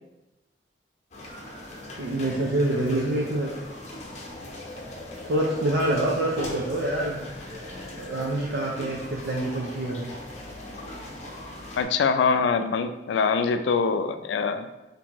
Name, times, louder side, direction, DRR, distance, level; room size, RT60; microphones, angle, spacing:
sound 1, 1.1-11.8, left 1 dB, 40° left, 0.7 m, -39 dB
voice 1, 2.0-3.5 5.3-7.2 8.0-10.1, right 1 dB, 80° right, -3 dB, 0.5 m, -26 dB
voice 2, 11.8-14.7, left 5 dB, 85° left, 9 dB, 0.3 m, -24 dB
4.4 x 2.7 x 2.9 m, 1.0 s
head